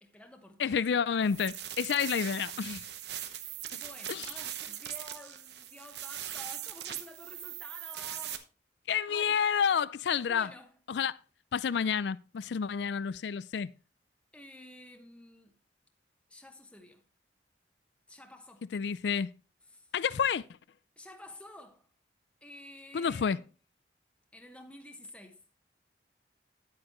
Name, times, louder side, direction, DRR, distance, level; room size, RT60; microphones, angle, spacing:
voice 1, 0.0-0.8 2.3-2.6 3.3-8.4 9.1-9.5 10.3-10.8 14.3-15.5 16.3-17.0 18.1-18.7 19.7-19.9 21.0-21.9 22.4-23.4 24.3-25.4, left 1 dB, 5° left, 1.0 m, -51 dB
voice 2, 0.6-2.8 4.1-4.3 8.9-10.5 10.9-11.2 11.5-13.7 18.7-19.3 19.9-20.5 22.9-23.4, left 7 dB, 70° left, 0.4 m, -29 dB
sound 1, 1.2-8.4, right 11 dB, 65° right, 1.0 m, -40 dB
11.0 x 8.6 x 3.0 m
head